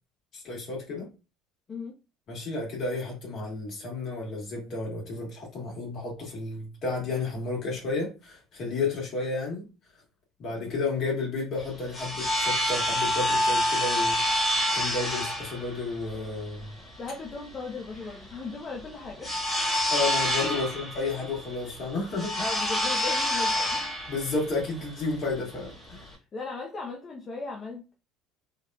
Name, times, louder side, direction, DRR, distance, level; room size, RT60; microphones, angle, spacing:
voice 1, 0.3-1.1 2.3-9.7 10.4-14.2 14.7-16.7 19.9-22.5 24.1-26.1, left 3 dB, 55° left, 1.9 m, -32 dB
sound 1, 11.6-26.1, left 1 dB, 15° left, 1.6 m, -28 dB
voice 2, 17.0-19.4 20.5-20.8 22.4-23.9 26.3-27.9, left 4 dB, 35° left, 0.7 m, -38 dB
3.9 x 2.7 x 2.3 m
supercardioid pair, 95°, 0 cm